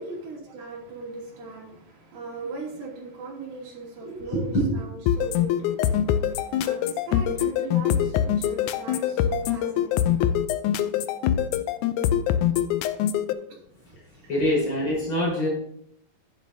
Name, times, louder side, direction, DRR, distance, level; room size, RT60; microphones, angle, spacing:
voice 1, 0.0-4.5 4.7-10.4, right 3 dB, 85° right, -4 dB, 4.3 m, -39 dB
voice 2, 4.0-4.5 14.3-15.5, left 1 dB, 35° left, -5 dB, 4.9 m, -25 dB
sound 1, 5.1-13.3, left 10 dB, 85° left, 1.8 m, -23 dB
10.5 x 10.0 x 2.7 m, 0.69 s
omnidirectional pair, 4.0 m